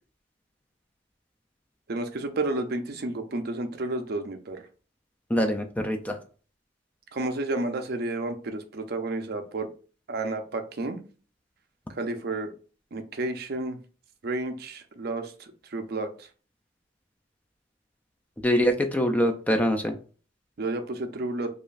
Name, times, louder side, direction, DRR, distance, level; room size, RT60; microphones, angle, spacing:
voice 1, 1.9-4.6 7.1-9.7 10.1-11.0 12.0-12.5 12.9-13.8 14.2-16.1 20.6-21.5, right 2 dB, 55° right, 7 dB, 0.5 m, -31 dB
voice 2, 5.3-6.1 18.4-19.9, equal, 10° left, 5 dB, 0.3 m, -24 dB
4.9 x 2.5 x 2.4 m, 0.39 s
head